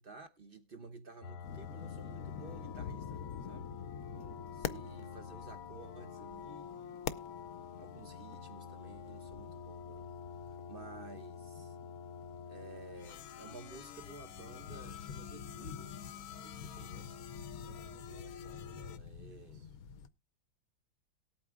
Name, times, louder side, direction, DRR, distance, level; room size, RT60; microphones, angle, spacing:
voice 1, 0.0-3.7 4.5-7.0 7.8-10.1 10.5-11.8 12.5-17.2 18.8-19.7, right 4 dB, 50° right, 0.6 m, -53 dB
sound 1, 1.2-19.0, left 7 dB, 80° left, 1.5 m, -48 dB
sound 2, 1.4-20.1, left 8 dB, 65° left, 0.9 m, -48 dB
voice 2, 4.1-4.5 17.5-19.8, right 8 dB, 85° right, 1.6 m, -61 dB
sound 3, 10.5-18.3, right 5 dB, 20° right, 1.0 m, -69 dB
19.0 x 8.7 x 2.3 m
omnidirectional pair, 2.2 m